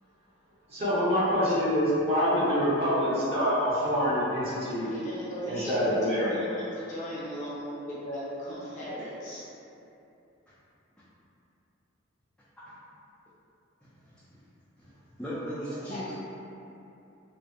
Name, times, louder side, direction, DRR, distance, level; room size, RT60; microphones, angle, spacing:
voice 1, 0.7-4.9 5.5-6.3, equal, 30° right, -10 dB, 0.6 m, -26 dB
voice 2, 4.5-9.4 15.7-16.1, equal, 40° left, -9 dB, 0.6 m, -38 dB
voice 3, 15.2-16.1, equal, 5° left, -13 dB, 0.3 m, -37 dB
2.5 x 2.1 x 2.4 m, 2.7 s
head